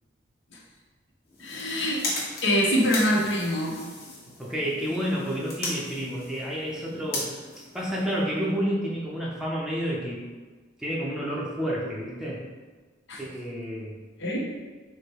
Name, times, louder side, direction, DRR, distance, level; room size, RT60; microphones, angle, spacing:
sound 1, 1.3-8.5, left 2 dB, 55° left, 1.3 m, -37 dB
voice 1, 1.4-2.0 2.4-3.8 13.1-13.2 14.2-14.4, equal, 75° left, -3 dB, 1.0 m, -24 dB
voice 2, 4.4-10.3 10.8-12.4 13.2-13.9, equal, 5° right, -5 dB, 0.6 m, -30 dB
4.8 x 2.2 x 4.6 m, 1.4 s
head